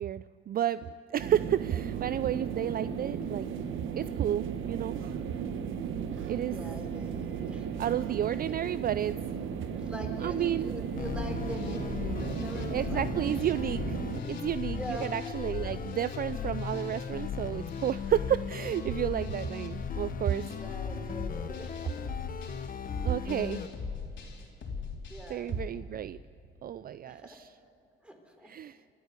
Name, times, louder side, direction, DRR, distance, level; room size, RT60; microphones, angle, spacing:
voice 1, 0.0-3.5 4.0-5.0 6.3-6.5 7.8-9.2 10.2-10.7 12.7-14.0 14.3-20.4 23.0-23.6 25.3-26.2 26.6-27.5 28.4-28.8, right 10 dB, 50° right, 15 dB, 0.4 m, -31 dB
sound 1, 1.2-14.2, right 7 dB, 80° right, 1.2 m, -35 dB
voice 2, 6.2-7.7 8.0-8.5 9.6-13.5 14.7-15.1 15.6-15.7 20.4-22.1 23.2-23.9 25.1-25.5 27.0-27.4 28.0-28.5, equal, 5° right, 3 dB, 4.0 m, -44 dB
sound 2, 10.9-25.7, left 5 dB, 70° left, 3.9 m, -40 dB
sound 3, 11.0-23.7, left 6 dB, 45° left, 1.1 m, -38 dB
27.5 x 13.0 x 8.3 m, 2.7 s
cardioid pair, 90°, 20 cm